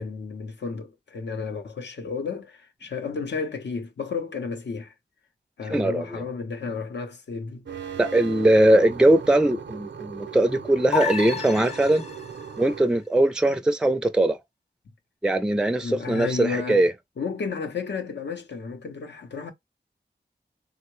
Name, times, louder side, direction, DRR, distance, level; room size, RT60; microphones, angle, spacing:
voice 1, 0.0-4.9 5.6-7.8 15.8-16.9 17.2-19.5, left 5 dB, 75° left, 0.7 m, -32 dB
voice 2, 5.7-6.2 8.0-12.0 12.6-14.4 15.2-16.9, right 1 dB, 5° right, 0.4 m, -21 dB
sound 1, 7.7-12.9, right 7 dB, 85° right, 0.6 m, -38 dB
sound 2, 10.9-12.5, left 7 dB, 35° left, 0.7 m, -30 dB
3.6 x 2.1 x 3.0 m
wide cardioid pair, 65°, 18 cm